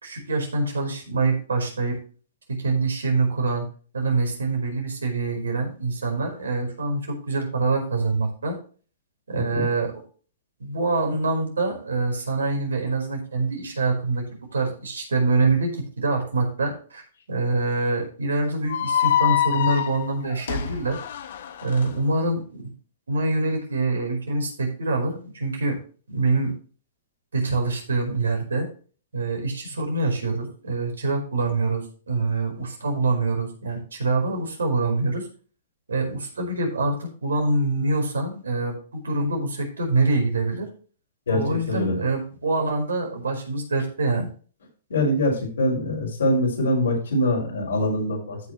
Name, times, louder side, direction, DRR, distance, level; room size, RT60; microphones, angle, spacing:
voice 1, 0.0-2.0 2.5-3.7 3.9-8.6 9.3-9.9 10.6-14.3 14.5-21.0 21.6-22.7 23.1-25.8 26.1-26.5 27.3-28.7 29.1-35.3 35.9-40.7 41.3-44.3, right 3 dB, 85° right, 2 dB, 4.8 m, -25 dB
voice 2, 9.3-9.7 41.3-41.4 41.7-42.0 44.9-48.4, left 1 dB, 85° left, -1 dB, 6.0 m, -23 dB
sound 1, 18.7-21.9, left 10 dB, 65° left, 1.5 m, -25 dB
14.5 x 6.3 x 3.2 m, 0.39 s
hypercardioid pair, 125°, 0 cm